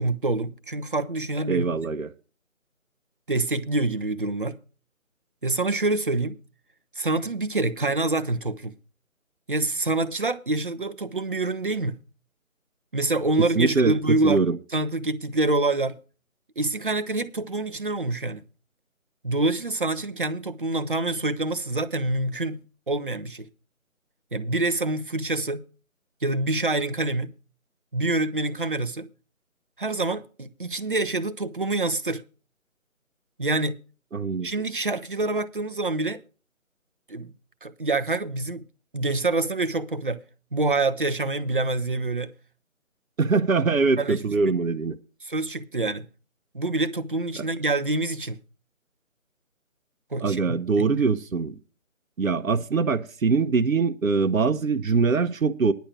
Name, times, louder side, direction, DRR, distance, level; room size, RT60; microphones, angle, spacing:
voice 1, 0.0-1.8 3.3-4.6 5.4-6.4 7.0-8.7 9.5-12.0 12.9-16.0 16.6-18.4 19.2-22.6 22.9-23.5 24.3-25.6 26.2-27.3 27.9-29.1 29.8-32.2 33.4-33.8 34.4-36.2 37.1-37.3 37.6-38.7 38.9-40.2 40.5-42.3 44.0-44.2 45.2-46.1 46.5-48.4 50.1-50.9, right 2 dB, 40° right, 0.6 m, -26 dB
voice 2, 1.5-2.1 13.5-14.6 34.1-34.5 43.2-45.0 47.4-47.5 50.2-51.5 52.2-55.7, right 4 dB, 75° right, 0.8 m, -23 dB
10.5 x 6.4 x 7.2 m
figure-of-eight pair, 160°, 41 cm